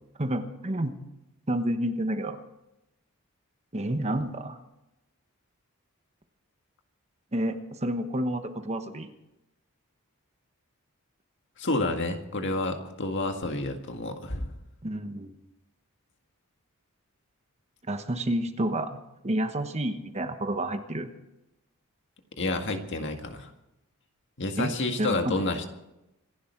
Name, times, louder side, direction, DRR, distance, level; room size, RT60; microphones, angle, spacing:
voice 1, 0.2-0.9 1.5-2.4 3.7-4.6 7.3-9.1 14.8-15.3 17.9-19.0 19.2-21.1 24.6-25.4, right 1 dB, 30° right, 7 dB, 1.2 m, -29 dB
voice 2, 11.6-14.5 22.4-23.5 24.4-25.7, left 2 dB, 55° left, 5 dB, 1.9 m, -29 dB
26.5 x 11.5 x 4.6 m, 0.90 s
head